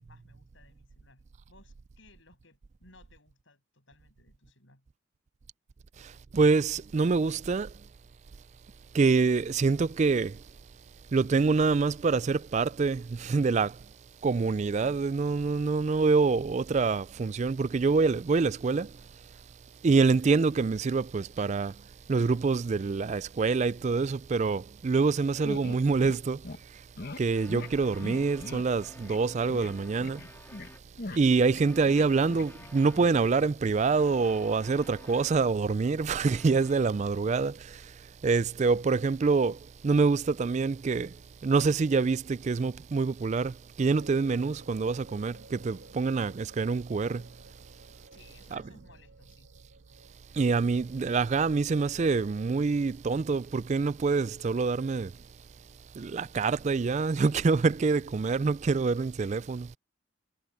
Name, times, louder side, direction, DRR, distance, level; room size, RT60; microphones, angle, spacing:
voice 1, 0.0-4.9 48.1-49.6, left 3 dB, 65° left, 7.2 m, -60 dB
voice 2, 6.0-7.7 8.9-10.4 11.1-13.8 14.2-19.0 19.8-21.8 22.1-26.8 27.2-30.2 31.2-41.2 41.4-47.3 48.5-48.6 50.3-55.1 55.9-59.8, right 4 dB, 35° right, 0.3 m, -26 dB
sound 1, 25.4-26.2 26.4-26.6 27.0-27.2 27.5-27.7 28.0-28.7 29.0-29.2 29.5-29.7 30.0-30.7 31.0-32.7 33.0-33.2, left 2 dB, 45° left, 1.3 m, -40 dB
sound 2, 27.3-30.9 31.6-33.2 33.9-35.6 36.2-36.8, left 1 dB, 10° left, 3.3 m, -52 dB
sound 3, 43.8-51.3, right 2 dB, 70° right, 3.1 m, -55 dB
head